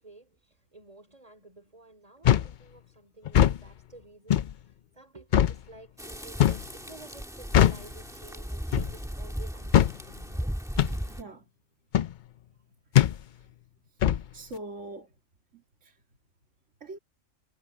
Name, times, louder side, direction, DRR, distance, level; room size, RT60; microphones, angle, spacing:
voice 1, 0.0-10.5, right 2 dB, 25° right, 3.8 m, -52 dB
sound 1, 2.2-2.5 3.2-3.6 4.3-4.5 5.3-5.6 6.4-6.7 7.5-7.9 8.7-9.0 9.7-10.0 10.8-11.0 11.9-12.1 12.9-13.2 14.0-14.2, left 11 dB, 80° left, 0.4 m, -21 dB
sound 2, 6.0-11.2, equal, ahead, 1.5 m, -36 dB
voice 2, 11.1-11.5 13.1-13.2 14.0-15.1 15.5-16.0 16.8-17.0, right 2 dB, 60° right, 2.4 m, -43 dB
omnidirectional pair, 1.4 m